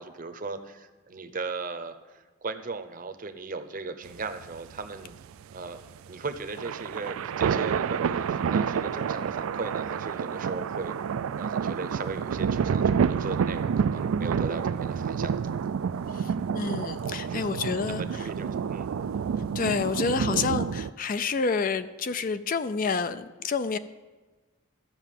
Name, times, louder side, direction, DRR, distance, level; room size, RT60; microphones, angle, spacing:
voice 1, 0.0-5.1 5.5-11.0 11.3-15.7 17.2-17.5 17.9-18.9, right 3 dB, 40° right, 9 dB, 0.7 m, -37 dB
sound 1, 4.1-20.9, right 7 dB, 80° right, 0.3 m, -29 dB
voice 2, 16.1-18.3 19.5-23.8, left 5 dB, 40° left, 12 dB, 0.4 m, -29 dB
13.5 x 5.8 x 7.4 m, 1.3 s
head